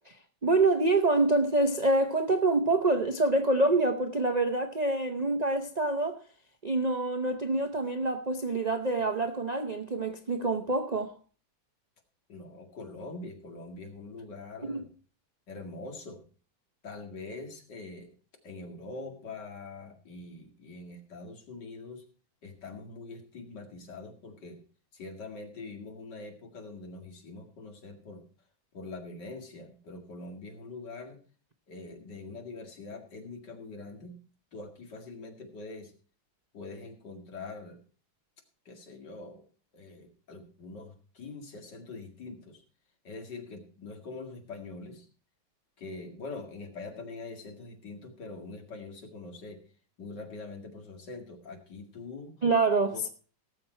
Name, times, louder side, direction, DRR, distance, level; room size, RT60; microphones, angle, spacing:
voice 1, 0.4-6.2 6.6-11.1 14.6-14.8 52.4-53.1, right 2 dB, 70° right, 0.4 m, -26 dB
voice 2, 12.3-14.9 15.5-16.2 16.8-18.1 18.4-22.0 22.4-24.6 24.9-28.2 28.7-31.2 31.7-34.2 34.5-35.9 36.5-37.8 38.7-39.4 39.7-42.6 43.0-45.1 45.8-49.6 50.0-52.4 52.9-53.0, left 3 dB, 60° left, 2.7 m, -43 dB
18.0 x 7.2 x 4.4 m
omnidirectional pair, 2.1 m